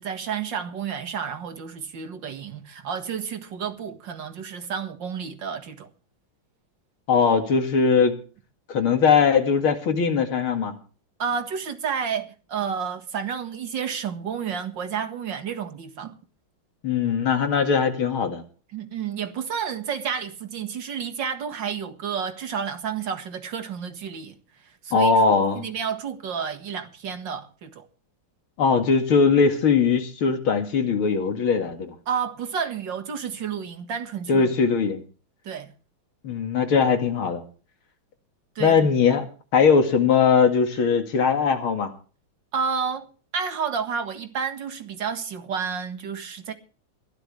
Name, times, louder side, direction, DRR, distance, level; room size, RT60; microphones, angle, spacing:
voice 1, 0.0-5.9 11.2-16.2 18.7-24.4 24.8-27.9 32.1-34.5 35.4-35.7 38.6-38.9 42.5-46.5, right 7 dB, 60° right, 2.4 m, -30 dB
voice 2, 7.1-8.2 8.7-10.8 16.8-18.4 24.9-25.6 28.6-31.9 34.3-35.0 36.2-37.4 38.6-41.9, left 5 dB, 85° left, 2.9 m, -20 dB
21.0 x 12.5 x 3.4 m
omnidirectional pair, 2.3 m